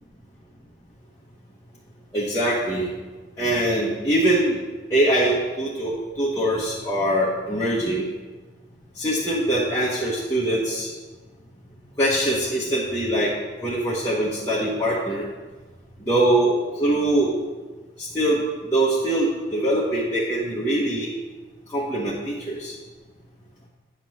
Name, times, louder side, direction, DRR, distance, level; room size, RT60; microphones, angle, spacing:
voice 1, 2.1-2.9 3.4-4.6 4.9-8.1 9.0-10.9 12.0-13.3 13.6-15.2 16.1-17.4 18.0-18.4 18.7-21.1 21.7-22.7, right 1 dB, 15° left, -7 dB, 1.2 m, -23 dB
9.3 x 3.8 x 6.3 m, 1.3 s
head